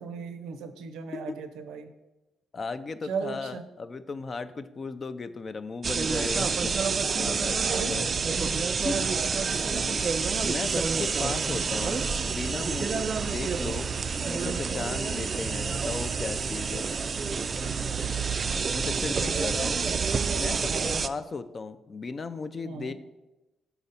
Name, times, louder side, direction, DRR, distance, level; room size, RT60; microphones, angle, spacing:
voice 1, 0.0-1.9 3.0-3.6 7.6-8.6 9.1-9.3 9.5-9.7 19.3-19.5 20.7-21.1 22.6-22.9, right 5 dB, 85° right, 9 dB, 0.6 m, -37 dB
voice 2, 2.5-6.7 7.2-8.1 8.8-9.1 9.7-10.0 10.4-13.9 14.2-16.9 18.7-19.8 20.3-22.9, left 4 dB, 35° left, 11 dB, 0.4 m, -36 dB
sound 1, 5.8-21.1, right 5 dB, 40° right, 0.3 m, -28 dB
5.9 x 4.0 x 5.5 m, 1.0 s
cardioid pair, 90°, 0 cm